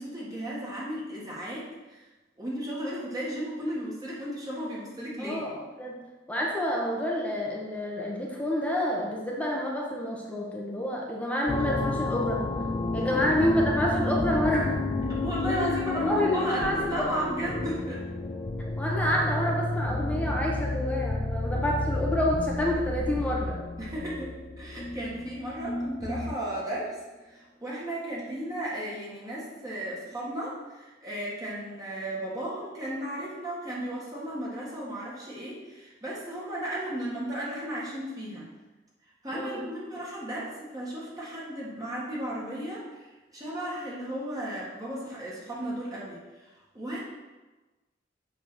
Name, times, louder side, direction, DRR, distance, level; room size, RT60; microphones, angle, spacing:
voice 1, 0.0-2.0 2.4-5.4 13.1-13.2 15.1-18.0 23.8-27.0 27.3-38.5 39.2-46.5 46.7-47.0, right 1 dB, 20° right, -6 dB, 1.6 m, -35 dB
voice 2, 5.2-5.9 6.3-12.4 12.9-14.8 15.4-17.1 18.8-23.6 39.3-39.6, equal, 5° left, -2 dB, 1.0 m, -28 dB
sound 1, 11.5-26.5, left 2 dB, 25° left, 0.4 m, -31 dB
7.1 x 3.6 x 6.1 m, 1.2 s
head